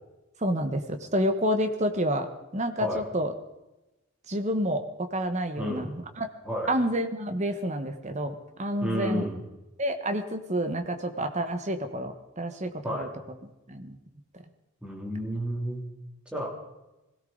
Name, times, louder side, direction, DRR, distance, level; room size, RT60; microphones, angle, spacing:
voice 1, 0.4-3.3 4.3-6.3 6.7-9.3 9.8-13.1 13.7-14.0, equal, 30° right, 7 dB, 1.3 m, -29 dB
voice 2, 5.6-5.9 6.4-6.7 8.8-9.4 12.8-13.1 14.8-15.8 16.3-16.5, equal, 5° right, -2 dB, 3.1 m, -31 dB
22.0 x 16.5 x 4.0 m, 1.0 s
head